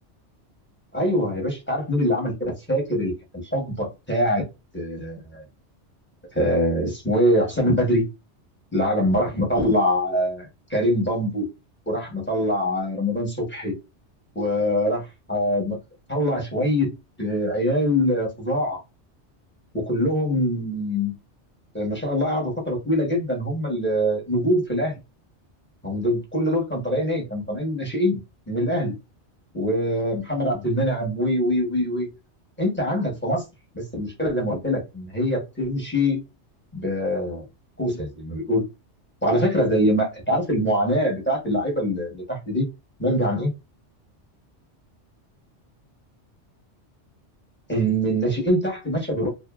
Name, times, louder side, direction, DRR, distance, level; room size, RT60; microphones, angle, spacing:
voice 1, 0.9-4.4 4.7-5.4 6.3-8.1 8.7-11.5 11.9-13.7 14.3-15.8 16.1-18.8 19.7-21.1 21.7-25.0 25.8-28.2 28.5-28.9 29.5-32.1 32.6-33.4 33.7-36.2 36.7-37.4 37.8-38.7 39.2-42.7 43.0-43.5 47.7-49.3, equal, 10° left, 1.1 m, -24 dB
2.6 x 2.6 x 2.4 m
omnidirectional pair, 1.2 m